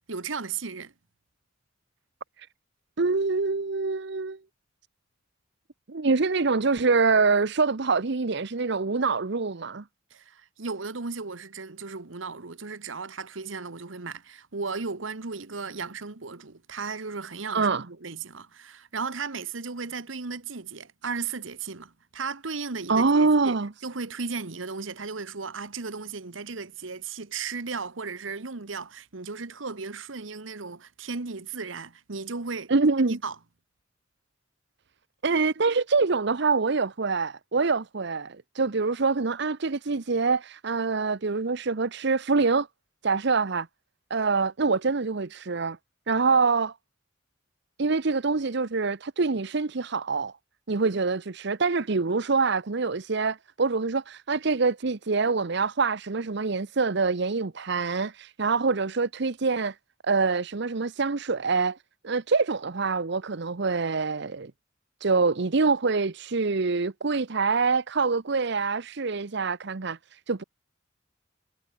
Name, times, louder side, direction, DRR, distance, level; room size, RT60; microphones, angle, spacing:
voice 1, 0.1-0.9 10.1-23.6 23.8-32.7 33.0-33.3, right 4 dB, 85° right, 1.3 m, -35 dB
voice 2, 3.0-4.4 5.9-9.8 17.5-17.8 22.9-23.7 32.7-33.1 35.2-42.7 43.0-43.7 44.1-45.8 46.1-46.7 47.8-50.3 50.7-59.8 60.0-61.8 62.0-64.5 65.0-70.4, right 4 dB, 60° right, 0.9 m, -25 dB
head